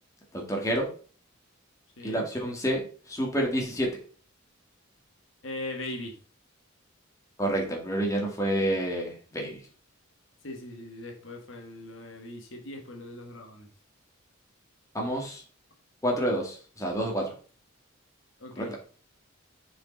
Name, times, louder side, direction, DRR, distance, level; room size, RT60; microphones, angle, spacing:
voice 1, 0.3-0.9 2.0-2.8 3.1-3.9 7.4-9.6 14.9-15.4 16.0-17.3 18.6-18.8, right 1 dB, 15° left, 0 dB, 2.0 m, -28 dB
voice 2, 2.0-2.3 5.4-6.1 10.4-13.7 18.4-18.7, left 1 dB, 60° left, 2 dB, 1.7 m, -40 dB
6.8 x 5.0 x 4.0 m, 0.41 s
head